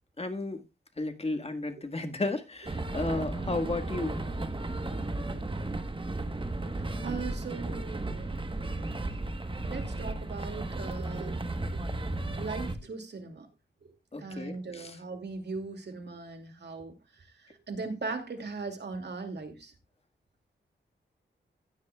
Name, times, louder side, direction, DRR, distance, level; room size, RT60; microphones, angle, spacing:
voice 1, 0.2-0.6 1.0-4.2 14.1-15.0, left 2 dB, 30° left, 8 dB, 1.7 m, -33 dB
sound 1, 2.7-12.8, right 2 dB, 25° right, 1.2 m, -34 dB
voice 2, 7.0-8.4 9.7-11.4 12.4-13.5 14.2-16.9 17.7-19.7, right 4 dB, 60° right, 6 dB, 2.4 m, -38 dB
15.5 x 9.6 x 2.3 m, 0.24 s
cardioid pair, 75°, 19 cm